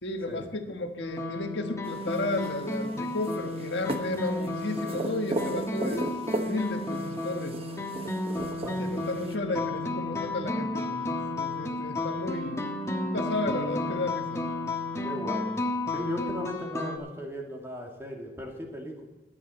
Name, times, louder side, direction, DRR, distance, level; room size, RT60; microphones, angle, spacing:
voice 1, 0.0-7.5 8.6-12.6 13.1-14.4, left 2 dB, 80° left, 5 dB, 1.4 m, -33 dB
sound 1, 1.0-17.0, left 2 dB, 15° left, 1.2 m, -33 dB
sound 2, 1.8-9.3, right 1 dB, 35° right, 1.0 m, -37 dB
voice 2, 8.3-9.0 15.0-15.5 15.9-19.0, equal, 15° right, 0 dB, 2.3 m, -37 dB
15.0 x 11.0 x 4.3 m, 1.1 s
head